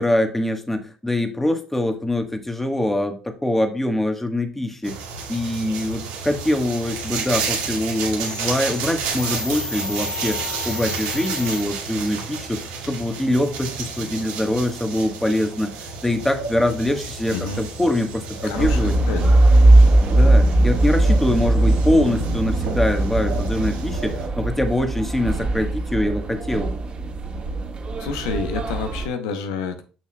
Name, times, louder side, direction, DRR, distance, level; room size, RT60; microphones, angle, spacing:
voice 1, 0.0-5.0 5.3-18.9 20.1-26.7, left 1 dB, 10° left, 6 dB, 1.3 m, -24 dB
sound 1, 4.8-24.3, right 5 dB, 90° right, 1.9 m, -32 dB
sound 2, 8.2-12.1, left 3 dB, 30° left, 2.8 m, -33 dB
voice 2, 17.3-17.6 18.4-19.4 28.0-29.8, left 5 dB, 90° left, 7 dB, 0.8 m, -29 dB
sound 3, 18.5-29.1, right 2 dB, 40° right, 1.7 m, -19 dB
7.2 x 6.0 x 2.3 m, 0.36 s
supercardioid pair, 75°, 3 cm